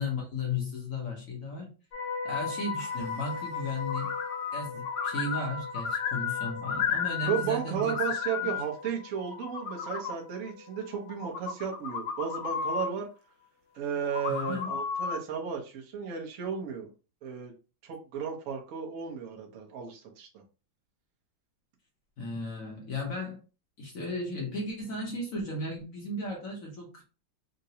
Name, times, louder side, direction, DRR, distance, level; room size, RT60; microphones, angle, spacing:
voice 1, 0.0-1.7 2.2-4.1 4.5-8.0 8.4-8.5 14.3-14.7 22.2-23.4 23.8-27.0, left 2 dB, 55° left, -1 dB, 1.0 m, -35 dB
sound 1, 1.9-12.0 12.3-12.6, left 5 dB, 70° left, 1.7 m, -39 dB
sound 2, 3.9-4.6 4.9-7.5 7.8-8.6 9.2-10.1 11.1-12.9 14.0-15.2, left 7 dB, 90° left, 1.5 m, -33 dB
voice 2, 7.2-13.1 13.7-16.9 17.2-17.5 17.8-20.3, right 7 dB, 55° right, 0 dB, 0.9 m, -34 dB
3.8 x 2.2 x 2.7 m, 0.34 s
omnidirectional pair, 2.2 m